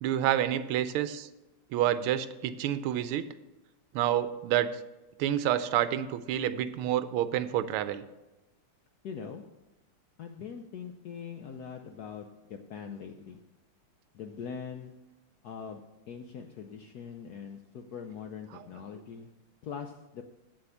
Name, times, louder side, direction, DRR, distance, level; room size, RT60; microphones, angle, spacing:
voice 1, 0.0-1.3 1.7-3.2 3.9-4.7 5.2-8.0 18.5-18.6, right 11 dB, 85° right, 13 dB, 1.5 m, -28 dB
voice 2, 9.0-9.4 10.2-13.4 14.1-14.9 15.4-15.8 16.1-19.3 19.6-20.2, left 7 dB, 75° left, 5 dB, 0.9 m, -42 dB
8.4 x 7.6 x 7.2 m, 1.0 s
omnidirectional pair, 2.4 m